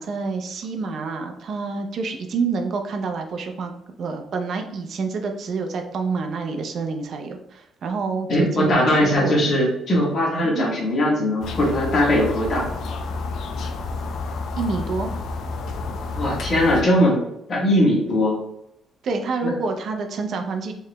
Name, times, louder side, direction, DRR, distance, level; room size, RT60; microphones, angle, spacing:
voice 1, 0.0-3.7 4.0-9.4 10.4-10.7 14.6-15.1 19.0-20.7, right 4 dB, 45° right, 5 dB, 0.5 m, -28 dB
voice 2, 8.3-12.7 16.1-17.2 17.5-18.4 19.4-19.5, left 1 dB, 40° left, -4 dB, 1.4 m, -20 dB
sound 1, 11.4-16.8, left 3 dB, 60° left, 0.4 m, -30 dB
4.8 x 3.1 x 2.2 m, 0.80 s
cardioid pair, 170°, 0 cm